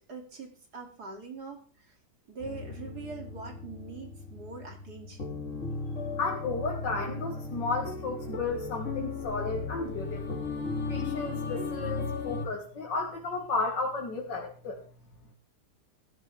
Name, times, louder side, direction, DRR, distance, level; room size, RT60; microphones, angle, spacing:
voice 1, 0.1-1.9 2.3-5.4, right 4 dB, 65° right, 2 dB, 3.2 m, -43 dB
sound 1, 2.4-12.5, left 4 dB, 50° left, 2.8 m, -36 dB
voice 2, 6.1-10.4 10.9-14.8, left 3 dB, 90° left, -1 dB, 2.5 m, -33 dB
17.5 x 12.5 x 3.4 m, 0.40 s
omnidirectional pair, 1.9 m